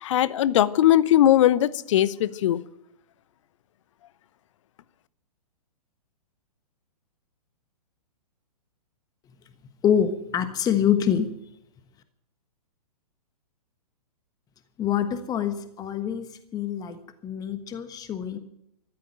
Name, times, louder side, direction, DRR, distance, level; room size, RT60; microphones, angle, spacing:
voice 1, 0.0-2.6, left 12 dB, 50° left, 0.9 m, -20 dB
voice 2, 9.8-11.3 14.8-18.4, left 9 dB, 20° left, 1.3 m, -25 dB
14.5 x 12.5 x 7.6 m
figure-of-eight pair, 115°, 20 cm